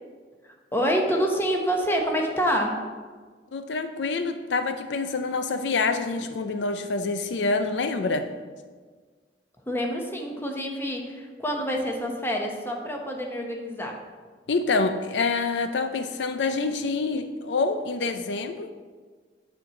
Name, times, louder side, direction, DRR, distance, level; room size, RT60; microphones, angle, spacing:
voice 1, 0.4-2.8 9.7-14.0, equal, 10° left, 1 dB, 1.1 m, -27 dB
voice 2, 3.5-8.3 14.5-18.7, left 3 dB, 70° left, 9 dB, 0.5 m, -26 dB
9.2 x 4.4 x 7.1 m, 1.5 s
head